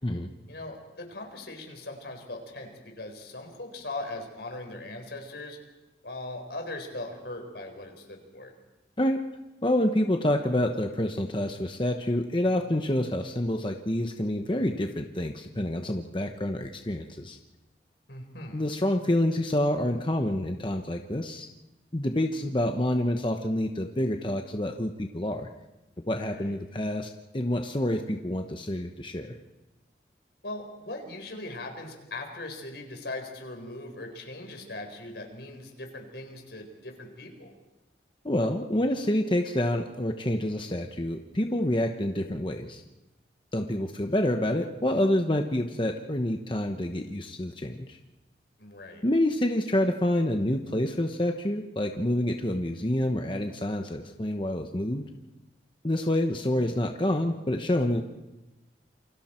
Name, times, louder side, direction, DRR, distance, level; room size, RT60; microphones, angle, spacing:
voice 1, 0.5-5.6 6.0-8.5 18.1-18.6 26.2-26.6 30.4-37.5 48.6-49.0, left 2 dB, 75° left, 3 dB, 4.4 m, -40 dB
voice 2, 9.6-17.4 18.5-21.5 21.9-25.5 26.1-29.3 38.2-42.8 43.5-48.0 49.0-55.0 55.8-58.0, left 1 dB, 30° left, 4 dB, 1.0 m, -27 dB
28.5 x 24.0 x 4.5 m, 1.0 s
head